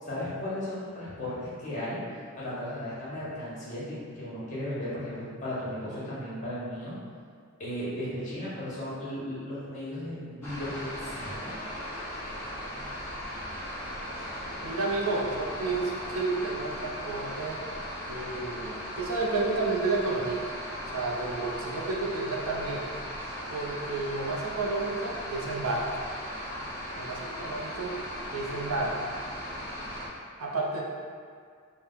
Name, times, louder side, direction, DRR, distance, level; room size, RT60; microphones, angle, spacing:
voice 1, 0.0-2.0 2.4-7.0 7.6-11.5, left 1 dB, 35° left, -8 dB, 1.2 m, -35 dB
sound 1, 10.4-30.1, equal, 10° left, 0.9 m, -38 dB
voice 2, 14.6-17.6 18.1-20.5 20.9-22.9 23.5-26.0 27.0-27.9 28.3-29.1 30.4-30.8, right 3 dB, 80° right, -2 dB, 0.6 m, -31 dB
4.4 x 2.2 x 3.9 m, 2.1 s
head